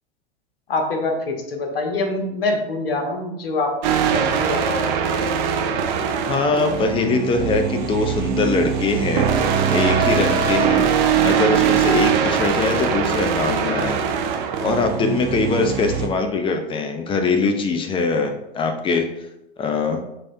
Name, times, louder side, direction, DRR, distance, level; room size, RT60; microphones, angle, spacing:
voice 1, 0.7-3.7 4.1-5.0, left 2 dB, 70° left, 2 dB, 1.1 m, -25 dB
sound 1, 3.8-16.1, right 7 dB, 50° right, 0.7 m, -21 dB
voice 2, 6.2-10.9 11.2-14.0 14.6-19.1 19.6-20.0, left 4 dB, 15° left, 5 dB, 0.6 m, -22 dB
5.3 x 3.4 x 2.7 m, 0.86 s
figure-of-eight pair, 95°, 30 cm